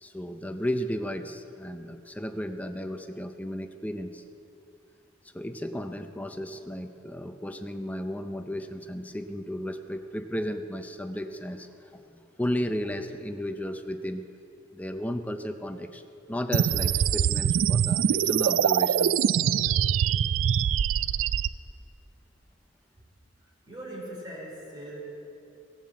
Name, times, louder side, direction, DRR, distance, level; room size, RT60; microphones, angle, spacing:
voice 1, 0.0-4.2 5.3-11.7 12.1-14.3 14.7-16.0 16.3-19.2, equal, 10° left, 7 dB, 0.5 m, -34 dB
sound 1, 16.5-21.5, right 8 dB, 85° right, 0.3 m, -24 dB
voice 2, 23.4-25.0, right 1 dB, 25° right, -4 dB, 3.2 m, -41 dB
17.5 x 7.2 x 7.5 m, 2.8 s
head